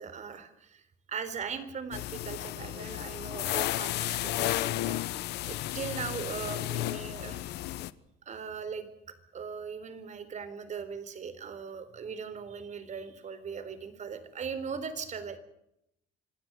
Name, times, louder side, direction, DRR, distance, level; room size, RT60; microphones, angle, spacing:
voice 1, 0.0-7.4 8.3-8.9 9.3-15.4, right 6 dB, 45° right, 13 dB, 3.9 m, -39 dB
sound 1, 1.9-7.9, left 16 dB, 85° left, 1.0 m, -33 dB
25.5 x 17.5 x 8.1 m, 0.78 s
cardioid pair, 110°, 17 cm